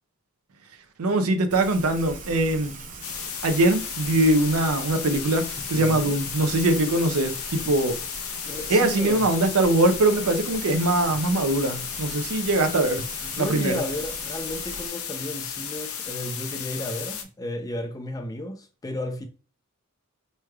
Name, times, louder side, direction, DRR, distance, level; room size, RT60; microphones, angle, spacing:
voice 1, 1.0-2.8 3.4-8.0 8.7-13.0 13.4-13.8, right 2 dB, 80° right, 0.6 m, -22 dB
Rain, 1.5-14.9, right 3 dB, 35° right, 0.7 m, -41 dB
sound 1, 3.0-17.2, left 8 dB, 70° left, 0.6 m, -34 dB
voice 2, 5.7-6.1 8.4-9.3 13.2-19.3, left 1 dB, 15° left, 0.4 m, -33 dB
4.7 x 3.1 x 2.2 m
head